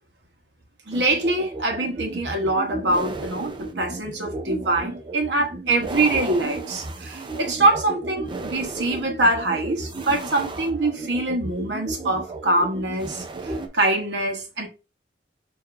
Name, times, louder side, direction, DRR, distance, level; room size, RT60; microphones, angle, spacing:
sound 1, 0.9-13.7, right 2 dB, 25° right, 0.5 m, -34 dB
voice 1, 0.9-14.7, right 2 dB, 65° right, 1.1 m, -24 dB
6.7 x 2.7 x 2.5 m
head